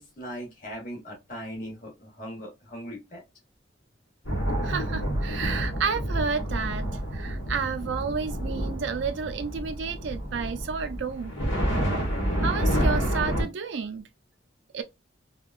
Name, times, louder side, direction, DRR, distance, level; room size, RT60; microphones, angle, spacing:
voice 1, 0.0-3.2, equal, 45° left, 1.3 m, -39 dB
sound 1, 4.2-13.4, equal, 70° left, 1.3 m, -28 dB
voice 2, 4.6-6.9 7.1-11.3 12.4-14.0 14.7-14.8, right 5 dB, 65° right, 0.4 m, -31 dB
3.4 x 2.3 x 2.4 m
head